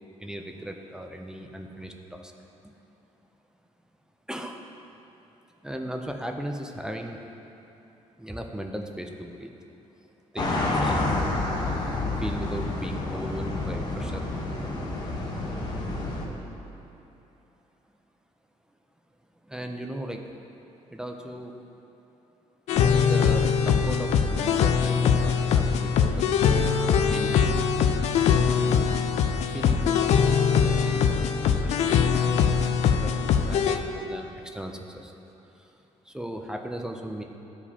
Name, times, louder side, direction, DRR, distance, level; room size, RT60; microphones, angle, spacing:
voice 1, 0.2-2.3 2.6-2.7 4.3-4.7 5.6-7.2 8.2-9.5 10.0-10.1 10.3-11.4 12.1-14.3 19.4-20.5 20.9-21.6 22.8-26.8 27.1-27.7 28.5-29.1 29.5-35.1 35.4-37.2, right 1 dB, 5° right, 3 dB, 0.4 m, -37 dB
sound 1, 10.4-16.3, left 2 dB, 35° left, 1.0 m, -29 dB
sound 2, 22.7-33.8, left 6 dB, 70° left, 0.4 m, -22 dB
13.0 x 4.9 x 2.8 m, 2.9 s
cardioid pair, 140°, 12 cm